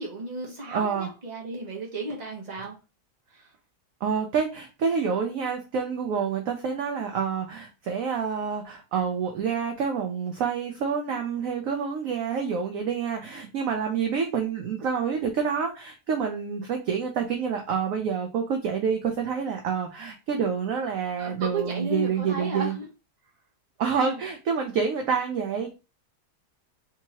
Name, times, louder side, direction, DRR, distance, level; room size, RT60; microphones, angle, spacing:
voice 1, 0.0-2.8 3.3-3.5 21.2-22.8 23.9-24.2, right 2 dB, 30° right, 1.1 m, -34 dB
voice 2, 0.7-1.1 4.0-22.7 23.8-25.7, right 6 dB, 65° right, 0.9 m, -28 dB
3.5 x 2.9 x 2.9 m
omnidirectional pair, 1.8 m